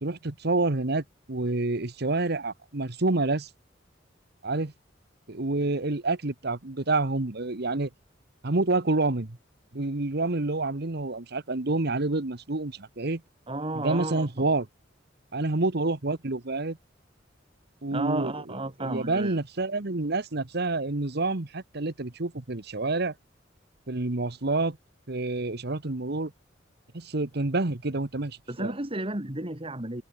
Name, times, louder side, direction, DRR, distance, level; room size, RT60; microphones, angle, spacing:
voice 1, 0.0-3.5 4.4-4.7 5.3-7.9 8.4-9.4 9.7-13.2 13.7-14.7 15.3-16.8 17.8-18.3 18.8-23.1 23.9-24.8 25.1-26.3 26.9-28.7, right 2 dB, 60° right, 1.4 m, -28 dB
voice 2, 13.5-14.4 17.9-19.4 28.5-30.0, right 2 dB, 30° right, 2.7 m, -32 dB
head